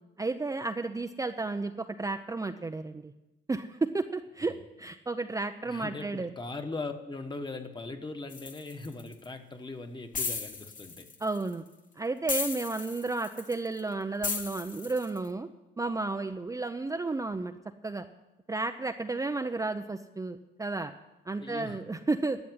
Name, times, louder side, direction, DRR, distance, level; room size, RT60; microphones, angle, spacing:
voice 1, 0.2-3.1 3.5-6.3 11.2-11.7 12.0-15.5 15.8-17.5 17.8-18.1 18.5-20.9 21.3-22.4, right 3 dB, 15° right, 6 dB, 0.6 m, -32 dB
voice 2, 5.7-11.1 21.4-21.8, left 3 dB, 20° left, 7 dB, 1.4 m, -40 dB
sound 1, 8.3-9.2 10.1-11.5 12.3-13.8 14.2-15.2, left 5 dB, 40° left, 1.4 m, -35 dB
12.5 x 7.2 x 9.6 m, 0.99 s
cardioid pair, 90°, 20 cm